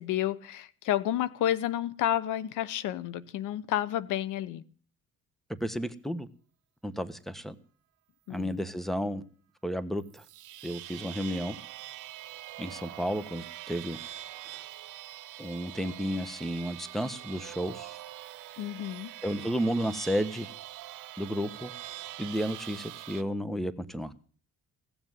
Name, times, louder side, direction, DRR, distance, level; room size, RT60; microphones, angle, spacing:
voice 1, 0.0-4.6 8.3-8.6 18.6-19.1, left 12 dB, 90° left, 17 dB, 0.9 m, -30 dB
voice 2, 5.6-6.3 6.8-7.5 8.3-9.2 9.6-10.2 10.6-11.6 12.6-14.0 15.4-18.0 19.2-20.5 21.2-21.7 22.2-24.1, equal, ahead, 14 dB, 1.2 m, -32 dB
sound 1, 10.0-23.2, right 15 dB, 80° right, 0.9 m, -44 dB
17.0 x 7.2 x 9.7 m, 0.43 s
cardioid pair, 90°, 30 cm